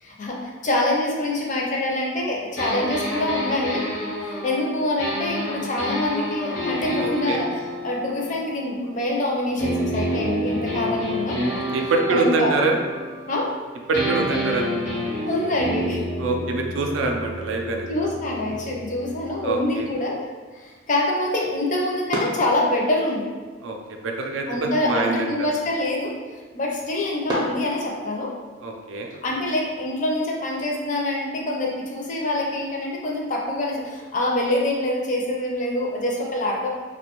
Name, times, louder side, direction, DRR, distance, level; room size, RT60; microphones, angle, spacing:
voice 1, 0.0-3.9 4.2-11.4 12.1-12.5 13.3-13.5 15.3-16.0 17.9-20.2 20.5-23.3 24.5-26.1 26.5-28.3 29.2-36.7, left 1 dB, 40° left, -2 dB, 0.4 m, -25 dB
sound 1, 2.6-9.1 9.6-13.6 13.9-19.7, equal, 75° left, 0.9 m, -29 dB
voice 2, 7.0-7.4 11.5-12.8 13.9-14.8 16.2-17.9 19.4-19.9 23.6-23.8 24.0-25.5 28.6-29.1, right 3 dB, 90° right, 2 dB, 0.4 m, -25 dB
sound 2, 18.3-28.4, equal, 25° right, 0.4 m, -37 dB
2.5 x 2.1 x 2.9 m, 1.5 s
head